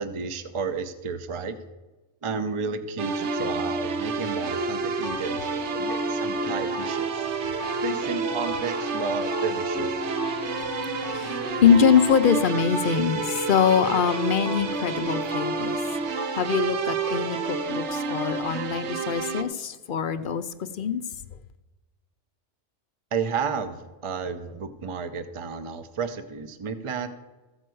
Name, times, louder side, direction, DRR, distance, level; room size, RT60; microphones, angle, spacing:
voice 1, 0.0-1.6 2.2-5.4 5.7-7.3 7.8-10.2 23.1-27.1, right 5 dB, 30° right, 9 dB, 0.7 m, -32 dB
sound 1, 3.0-19.4, right 4 dB, 70° right, 1.1 m, -29 dB
sound 2, 4.6-18.3, left 2 dB, 5° left, 0.5 m, -38 dB
voice 2, 7.3-7.7 10.3-15.8 16.3-20.5 20.7-21.0, left 7 dB, 55° left, 11 dB, 0.7 m, -24 dB
14.5 x 5.6 x 7.7 m, 1.1 s
omnidirectional pair, 1.2 m